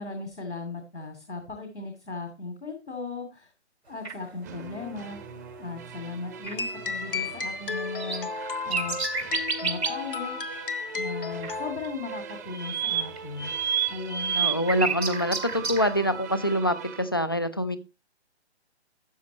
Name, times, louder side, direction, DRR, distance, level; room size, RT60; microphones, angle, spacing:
voice 1, 0.0-3.5 3.9-5.2 5.6-8.3 8.6-9.0 9.6-10.4 10.9-14.4, left 3 dB, 85° left, 5 dB, 2.6 m, -37 dB
sound 1, 4.0-4.1 6.5-6.6 7.8-10.1 11.4-11.5 11.8-15.9, right 6 dB, 65° right, 2.2 m, -29 dB
sound 2, 4.4-17.0, right 7 dB, 15° right, 0.8 m, -42 dB
sound 3, 6.4-11.7, left 5 dB, 50° left, 1.0 m, -33 dB
voice 2, 14.3-17.8, equal, 20° left, 12 dB, 0.4 m, -25 dB
12.5 x 8.1 x 2.9 m, 0.27 s
figure-of-eight pair, 140°, 34 cm